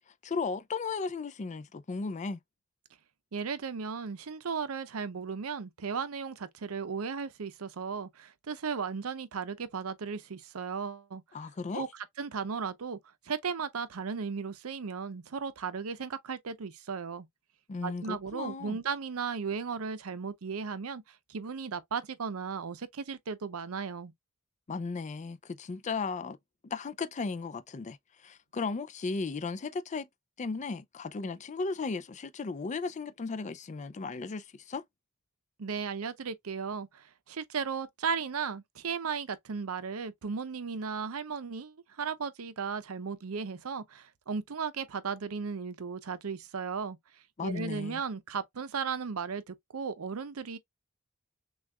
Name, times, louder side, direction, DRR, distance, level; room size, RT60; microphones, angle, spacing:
voice 1, 0.2-2.4 11.3-11.8 17.7-18.8 24.7-26.4 26.6-30.1 30.4-34.8 47.4-48.0, left 4 dB, 35° left, 0.4 m, -35 dB
voice 2, 3.3-11.2 11.7-13.0 13.2-17.3 17.8-24.1 35.6-47.0 47.4-50.6, right 5 dB, 80° right, 0.6 m, -36 dB
6.2 x 2.4 x 2.2 m
head